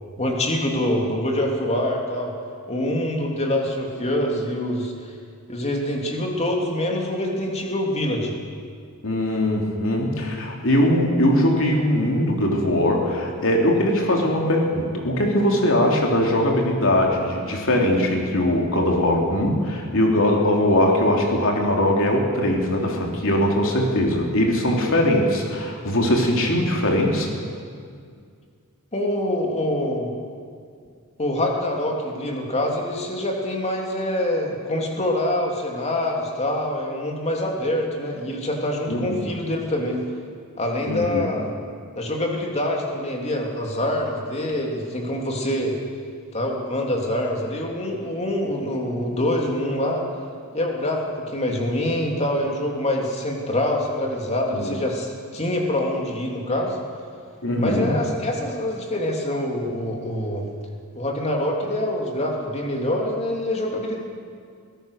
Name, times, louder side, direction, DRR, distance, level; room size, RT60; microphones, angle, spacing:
voice 1, 0.2-2.3 2.7-5.1 5.5-8.3 28.9-30.1 31.2-40.0 40.6-41.5 42.0-45.8 46.3-50.0 50.5-56.8 57.6-60.4 60.9-64.0, left 1 dB, 30° left, 0 dB, 3.0 m, -25 dB
voice 2, 9.0-27.3 38.9-39.2 40.9-41.3 54.6-54.8 57.4-57.9, left 1 dB, 65° left, 0 dB, 3.5 m, -21 dB
23.0 x 17.0 x 6.7 m, 2.2 s
head